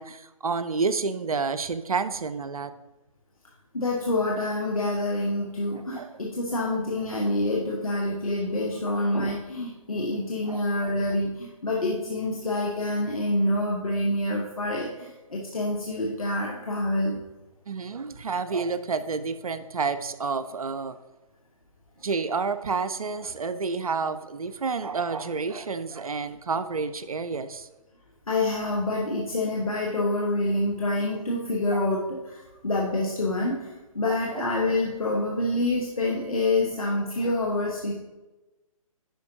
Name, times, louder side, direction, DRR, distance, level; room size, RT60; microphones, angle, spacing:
voice 1, 0.0-2.7 5.7-6.2 10.5-10.9 17.7-21.0 22.0-27.7 31.7-31.8 34.1-34.5, right 4 dB, 80° right, 12 dB, 0.5 m, -30 dB
voice 2, 3.7-17.2 28.3-33.7 33.9-37.9, left 1 dB, 75° left, -3 dB, 1.3 m, -27 dB
10.0 x 5.1 x 2.8 m, 1.1 s
figure-of-eight pair, 140°, 18 cm